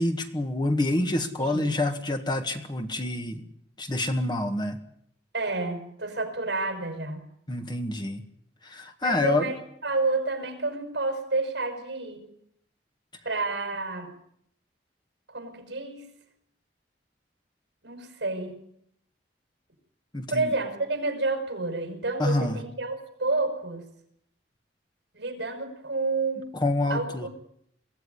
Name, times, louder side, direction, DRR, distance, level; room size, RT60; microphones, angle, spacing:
voice 1, 0.0-3.4 3.8-4.8 7.5-8.2 8.6-9.5 20.1-20.5 22.2-22.6 26.5-27.3, left 2 dB, 25° left, 7 dB, 1.7 m, -27 dB
voice 2, 1.4-1.7 5.3-7.2 9.0-9.6 9.8-12.2 13.2-14.1 15.3-16.0 17.8-18.5 20.3-23.8 25.1-26.6 26.9-27.3, right 3 dB, 65° right, 5 dB, 6.3 m, -29 dB
23.5 x 16.0 x 9.8 m, 0.73 s
head